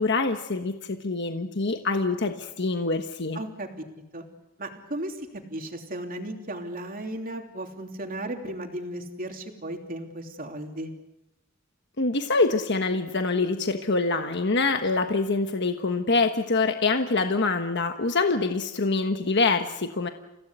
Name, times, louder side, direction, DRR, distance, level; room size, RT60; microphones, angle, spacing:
voice 1, 0.0-3.4 12.0-20.1, left 3 dB, 55° left, 6 dB, 1.3 m, -25 dB
voice 2, 3.3-3.7 4.1-4.2 4.6-10.9, right 1 dB, 45° right, 3 dB, 3.1 m, -35 dB
30.0 x 16.5 x 8.1 m, 0.96 s
head